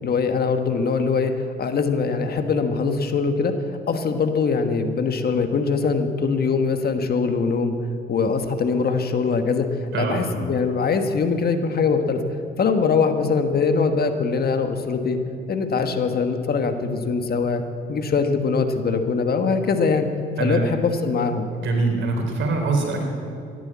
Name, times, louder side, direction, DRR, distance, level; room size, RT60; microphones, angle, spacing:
voice 1, 0.0-1.3 1.6-3.5 3.9-7.7 8.1-9.6 9.9-12.2 12.6-15.2 15.5-17.6 17.9-20.1 20.4-21.5, left 5 dB, 50° left, 7 dB, 1.4 m, -22 dB
voice 2, 9.9-10.3 20.4-20.6 21.5-23.0, right 3 dB, 75° right, 2 dB, 3.7 m, -23 dB
15.0 x 11.0 x 8.5 m, 2.5 s
cardioid pair, 90°, 20 cm